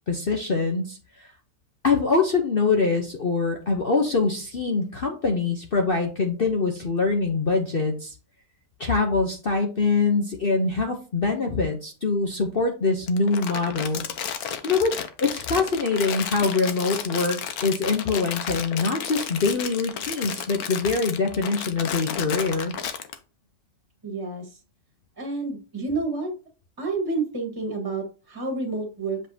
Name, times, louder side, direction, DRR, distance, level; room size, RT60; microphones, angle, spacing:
voice 1, 0.1-1.3 1.8-8.1 8.8-14.0 14.6-22.7, left 4 dB, 45° left, 3 dB, 0.9 m, -24 dB
Crumpling crinkling, 13.1-23.1, left 8 dB, 70° left, 1.3 m, -32 dB
voice 2, 24.0-24.6 25.2-26.3 26.8-29.2, right 3 dB, 15° right, 1 dB, 1.7 m, -29 dB
7.7 x 5.0 x 2.8 m, 0.35 s
omnidirectional pair, 1.7 m